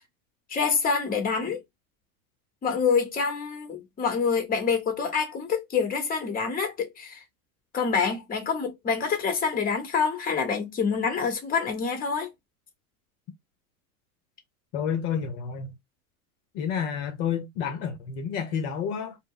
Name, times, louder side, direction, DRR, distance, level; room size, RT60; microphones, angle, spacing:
voice 1, 0.5-1.6 2.6-7.2 7.7-12.3, left 5 dB, 20° left, 1.0 m, -26 dB
voice 2, 14.7-15.7 16.5-19.2, left 7 dB, 55° left, 0.8 m, -30 dB
2.1 x 2.1 x 3.7 m
hypercardioid pair, 110°, 43 cm